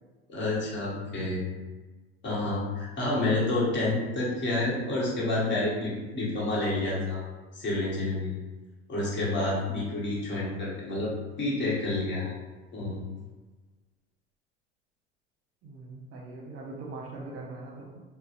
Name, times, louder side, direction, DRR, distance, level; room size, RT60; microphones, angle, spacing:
voice 1, 0.3-1.4 2.2-7.2 7.5-8.4 8.9-11.1 11.4-12.3 12.7-13.0, left 2 dB, 35° left, -5 dB, 1.1 m, -29 dB
voice 2, 15.6-18.0, right 2 dB, 45° right, -2 dB, 0.9 m, -41 dB
2.6 x 2.1 x 2.5 m, 1.3 s
hypercardioid pair, 75°, 33 cm